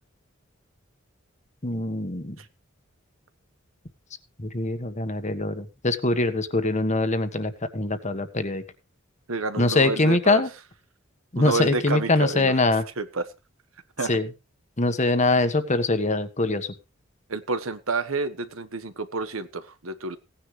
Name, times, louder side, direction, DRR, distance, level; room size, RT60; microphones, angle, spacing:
voice 1, 1.6-2.4 4.4-8.6 9.6-10.5 11.3-12.8 14.1-14.3 14.8-16.7, left 2 dB, 35° left, 10 dB, 1.4 m, -23 dB
voice 2, 9.3-10.4 11.4-12.5 13.0-13.3 14.0-14.2 17.3-20.2, right 3 dB, 90° right, 12 dB, 1.4 m, -29 dB
17.0 x 10.0 x 3.3 m, 0.28 s
head